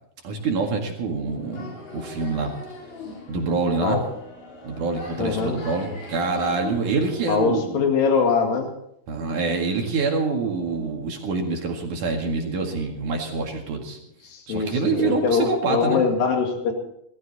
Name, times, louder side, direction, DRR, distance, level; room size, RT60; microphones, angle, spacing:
voice 1, 0.2-2.5 3.3-4.0 4.6-7.8 9.1-14.0 14.5-16.0, right 4 dB, 55° right, 1 dB, 3.2 m, -26 dB
sound 1, 1.3-7.3, left 3 dB, 85° left, 5.9 m, -40 dB
voice 2, 5.2-5.6 7.3-8.7 14.2-16.7, left 5 dB, 65° left, 3 dB, 3.8 m, -22 dB
18.5 x 15.0 x 4.2 m, 0.74 s
omnidirectional pair, 4.5 m